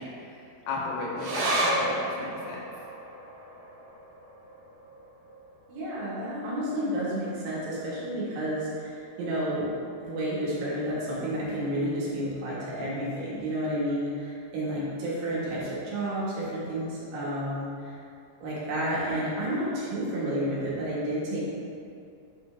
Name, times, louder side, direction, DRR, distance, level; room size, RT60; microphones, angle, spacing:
voice 1, 0.0-2.6, left 3 dB, 80° left, -4 dB, 3.0 m, -34 dB
sound 1, 1.2-8.0 8.3-8.4 8.7-9.4 9.9-10.0, right 1 dB, 70° right, 2.0 m, -34 dB
voice 2, 5.7-9.7 10.0-17.9 18.4-21.4, right 1 dB, 85° right, -7 dB, 3.8 m, -31 dB
7.6 x 6.0 x 3.4 m, 2.5 s
omnidirectional pair, 4.6 m